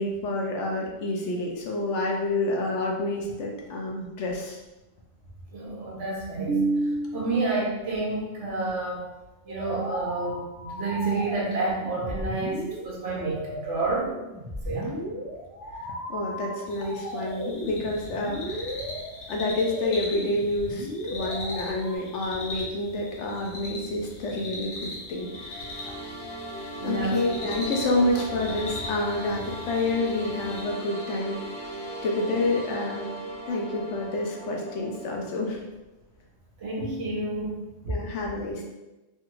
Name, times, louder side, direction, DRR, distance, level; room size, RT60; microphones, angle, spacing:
voice 1, 0.0-4.6 15.8-18.8 19.3-25.9 26.8-31.4 32.0-33.1 33.5-35.6 37.9-38.6, left 2 dB, 70° left, 0 dB, 0.9 m, -28 dB
voice 2, 5.5-9.0 9.5-14.1 14.6-14.9 26.8-27.5 36.6-37.6, right 3 dB, 70° right, -3 dB, 1.1 m, -29 dB
sound 1, 9.5-22.0, equal, 25° right, 0.6 m, -36 dB
sound 2, 16.7-30.6, left 2 dB, 90° left, 1.3 m, -40 dB
sound 3, 25.1-35.2, right 1 dB, 50° left, 0.4 m, -37 dB
3.3 x 2.3 x 2.9 m, 1.0 s
omnidirectional pair, 1.3 m